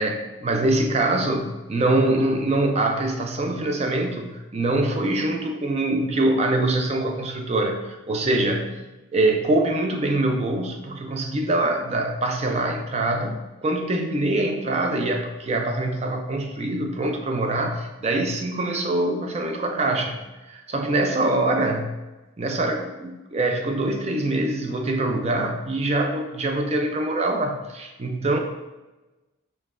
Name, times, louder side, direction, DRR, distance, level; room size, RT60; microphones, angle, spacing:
voice 1, 0.0-8.8 9.1-20.2 20.5-22.0 22.4-28.4, right 2 dB, 30° right, 4 dB, 0.4 m, -24 dB
5.3 x 3.2 x 2.4 m, 1.1 s
head